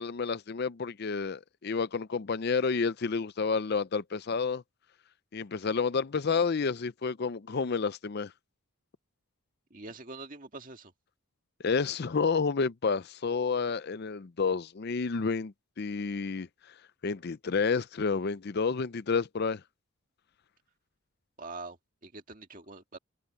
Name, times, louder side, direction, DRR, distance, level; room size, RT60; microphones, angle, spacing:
voice 1, 0.0-4.6 5.3-8.3 11.6-16.7 17.0-19.6, left 5 dB, 45° left, 0.5 m, -30 dB
voice 2, 9.7-10.9 21.4-23.0, right 3 dB, 40° right, 1.9 m, -44 dB
head